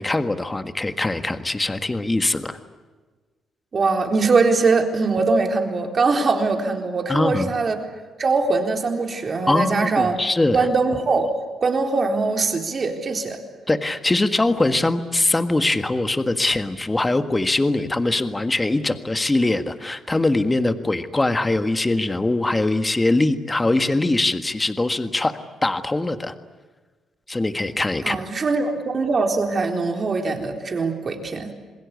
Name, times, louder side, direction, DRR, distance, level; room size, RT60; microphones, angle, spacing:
voice 1, 0.0-2.6 7.1-7.5 9.5-10.6 13.7-26.3 27.3-28.2, left 2 dB, 15° left, 9 dB, 1.7 m, -22 dB
voice 2, 3.7-7.8 8.2-10.2 10.5-11.3 11.6-13.4 28.0-31.5, right 4 dB, 40° right, 3 dB, 4.0 m, -22 dB
27.5 x 20.5 x 8.4 m, 1.3 s
cardioid pair, 90°, 0 cm